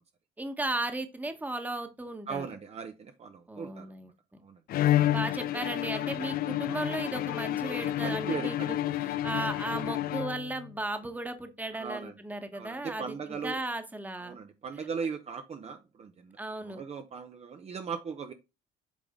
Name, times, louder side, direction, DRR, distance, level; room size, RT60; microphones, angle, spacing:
voice 1, 0.4-2.5 3.5-4.1 5.1-14.4 14.8-14.9 16.4-16.8, right 2 dB, 10° right, 1.3 m, -36 dB
voice 2, 2.3-3.9 4.4-4.6 8.0-8.7 11.7-12.1 12.5-13.6 14.2-18.3, right 6 dB, 40° right, 0.8 m, -38 dB
Bowed string instrument, 4.7-10.7, left 13 dB, 60° left, 0.5 m, -30 dB
8.4 x 3.8 x 3.7 m
cardioid pair, 110°, 17 cm